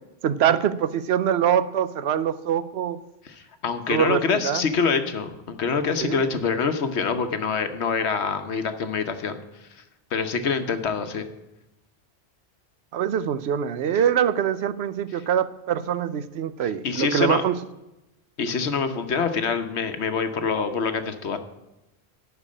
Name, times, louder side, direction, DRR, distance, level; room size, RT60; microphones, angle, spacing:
voice 1, 0.2-3.0 3.9-4.6 6.0-6.2 12.9-17.6, right 9 dB, 75° right, 14 dB, 0.9 m, -24 dB
voice 2, 3.2-9.4 9.7-9.8 10.1-11.3 16.6-17.4 18.4-21.4, left 5 dB, 80° left, 8 dB, 1.2 m, -25 dB
11.5 x 4.7 x 8.5 m, 0.97 s
omnidirectional pair, 1.1 m